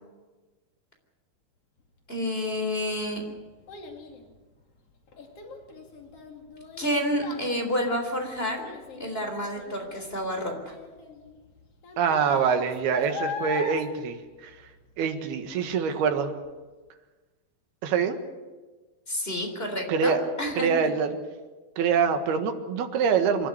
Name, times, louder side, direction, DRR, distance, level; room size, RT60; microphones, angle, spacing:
voice 1, 2.1-3.2 6.8-8.6 8.9-10.7 19.1-20.7, equal, 15° left, 3 dB, 3.7 m, -29 dB
Child speech kid speaking, 2.5-15.2 15.5-15.9 16.4-16.5, left 3 dB, 45° left, 3.0 m, -40 dB
voice 2, 12.0-14.2 14.4-14.5 15.0-16.3 17.8-18.2 19.9-20.2 20.6-21.2 21.8-23.5, right 6 dB, 80° right, 7 dB, 3.6 m, -25 dB
27.0 x 12.0 x 9.9 m, 1.3 s
omnidirectional pair, 4.4 m